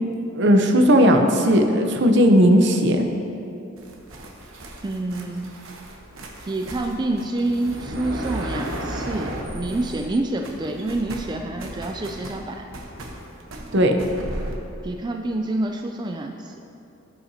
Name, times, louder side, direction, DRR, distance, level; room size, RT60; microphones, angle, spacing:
voice 1, 0.3-3.0 13.7-13.9, equal, 60° right, 4 dB, 0.8 m, -16 dB
sound 1, 3.8-10.2 10.4-14.6, right 1 dB, 80° right, 1.0 m, -35 dB
voice 2, 4.8-5.6 6.5-12.6 14.8-16.5, right 2 dB, 20° right, 3 dB, 0.3 m, -27 dB
16.0 x 5.8 x 2.8 m, 2.8 s
head